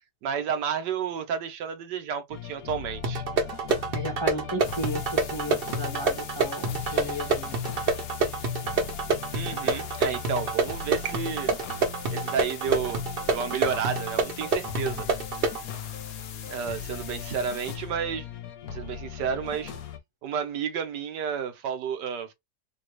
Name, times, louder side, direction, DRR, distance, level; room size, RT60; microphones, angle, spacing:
voice 1, 0.2-3.2 9.3-11.5 12.1-13.0 13.3-15.1 16.5-18.3 18.7-19.7 20.2-22.3, right 7 dB, 85° right, 1.4 m, -31 dB
sound 1, 2.3-20.0, left 7 dB, 65° left, 1.1 m, -40 dB
sound 2, 3.0-15.6, right 3 dB, 50° right, 0.7 m, -28 dB
voice 2, 3.9-7.6, equal, 20° left, 0.8 m, -34 dB
sound 3, 4.6-17.8, left 8 dB, 85° left, 0.5 m, -44 dB
3.9 x 2.3 x 3.0 m
omnidirectional pair, 1.8 m